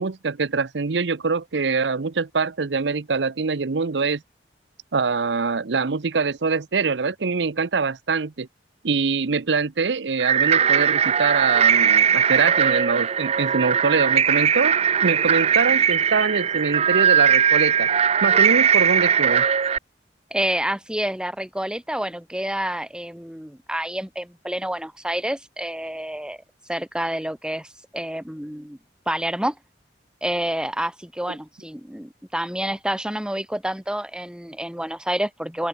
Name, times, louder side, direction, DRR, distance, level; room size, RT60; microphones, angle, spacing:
voice 1, 0.0-4.2 4.9-8.5 8.8-14.8 15.0-17.9 18.2-19.4, right 4 dB, 85° right, 0.7 m, -24 dB
sound 1, 10.2-19.8, right 8 dB, 35° right, 0.6 m, -19 dB
voice 2, 20.3-26.4 26.7-28.8 29.1-29.6 30.2-35.7, right 1 dB, 5° right, 1.9 m, -28 dB
open air
head